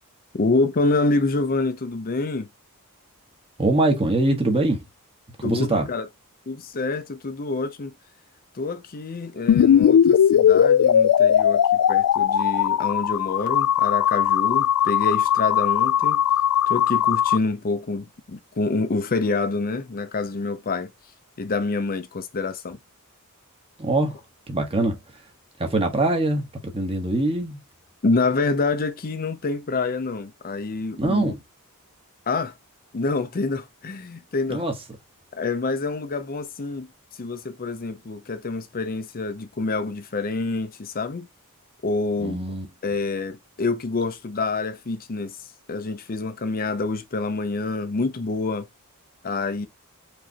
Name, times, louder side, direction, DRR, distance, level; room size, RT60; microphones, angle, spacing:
voice 1, 0.4-2.5 5.4-6.1 6.5-7.9 8.5-16.2 16.7-20.9 21.4-22.8 28.0-31.3 32.3-32.5 32.9-34.6 35.3-36.9 37.2-41.3 41.8-42.4 42.8-45.4 45.7-48.7 49.2-49.7, left 3 dB, 40° left, 0.6 m, -27 dB
voice 2, 3.6-4.8 5.4-5.9 23.8-24.2 24.5-25.0 25.6-27.6 31.0-31.4 34.5-34.7 42.2-42.7, right 2 dB, 25° right, 1.2 m, -23 dB
sound 1, 9.5-17.4, left 9 dB, 80° left, 0.3 m, -19 dB
4.9 x 3.1 x 2.8 m
head